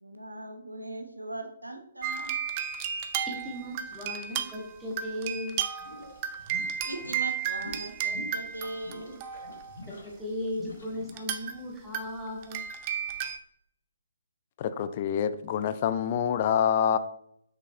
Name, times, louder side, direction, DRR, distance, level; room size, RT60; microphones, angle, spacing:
voice 1, 0.0-2.4 6.8-9.2, right 1 dB, 85° right, 6 dB, 0.8 m, -39 dB
sound 1, 2.0-9.7 11.1-11.6 11.9-13.4, right 8 dB, 30° right, 0.5 m, -33 dB
voice 2, 3.2-5.6 9.9-12.6, left 1 dB, ahead, -5 dB, 1.5 m, -36 dB
sound 2, 5.8-11.2, left 2 dB, 60° left, 1.8 m, -45 dB
voice 3, 14.6-17.0, left 9 dB, 35° left, 12 dB, 0.4 m, -26 dB
6.1 x 5.3 x 3.3 m, 0.75 s
figure-of-eight pair, 135°, 0 cm